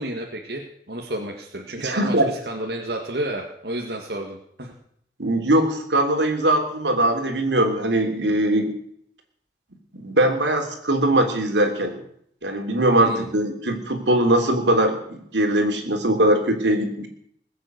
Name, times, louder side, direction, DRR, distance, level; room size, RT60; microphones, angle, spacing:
voice 1, 0.0-4.7 13.0-13.3, right 1 dB, 65° right, 0 dB, 2.0 m, -31 dB
voice 2, 1.8-2.3 5.2-8.7 10.0-12.0 12.4-17.1, right 1 dB, 85° right, 4 dB, 3.3 m, -21 dB
21.0 x 8.2 x 8.1 m, 0.68 s
head